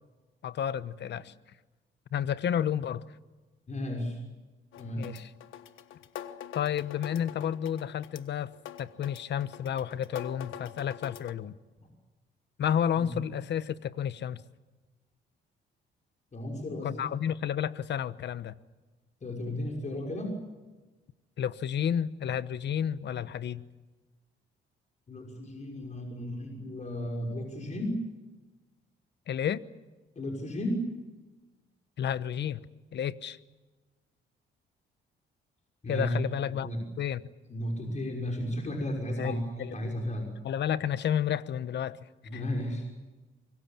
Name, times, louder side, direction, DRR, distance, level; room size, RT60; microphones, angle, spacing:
voice 1, 0.4-1.3 2.1-3.0 5.0-5.3 6.5-8.5 8.8-11.6 12.6-14.4 16.8-18.5 21.4-23.6 29.3-29.6 32.0-32.6 32.9-33.4 35.9-36.7 37.0-37.2 39.2-39.7 40.4-42.0 42.3-42.4, left 9 dB, 60° left, 15 dB, 1.2 m, -31 dB
voice 2, 3.7-4.2 4.8-5.1 13.0-13.1 16.3-17.0 19.2-20.4 25.1-28.0 30.2-30.9 35.8-36.1 36.6-36.8 37.5-40.3 42.2-42.9, left 1 dB, 35° left, 1 dB, 5.9 m, -34 dB
sound 1, 4.7-11.3, left 10 dB, 85° left, 1.4 m, -45 dB
25.5 x 23.0 x 7.6 m, 1.2 s
cardioid pair, 90°, 20 cm